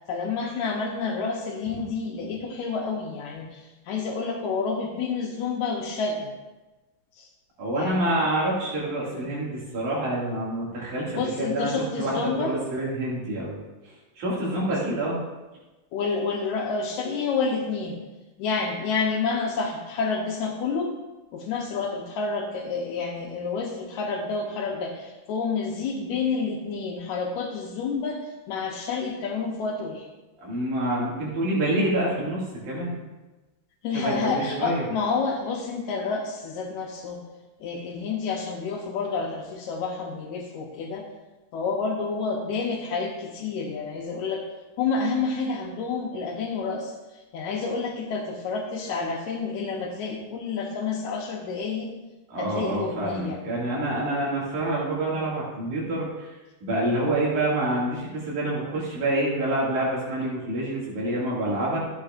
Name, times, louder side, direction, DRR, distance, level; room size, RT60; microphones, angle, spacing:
voice 1, 0.1-6.3 7.2-7.3 7.7-8.1 9.0-9.2 11.1-12.5 14.5-14.8 15.9-18.0 18.4-20.9 21.3-28.2 28.5-30.1 33.8-37.2 37.6-41.0 41.5-44.4 44.8-46.9 47.3-51.9 52.4-53.4 57.0-57.1, left 4 dB, 80° left, 0 dB, 2.2 m, -29 dB
voice 2, 7.6-11.7 12.0-15.2 30.4-32.9 33.9-34.9 52.3-56.4 56.6-61.8, right 1 dB, 85° right, -5 dB, 3.7 m, -27 dB
14.0 x 8.2 x 2.5 m, 1.1 s
omnidirectional pair, 3.4 m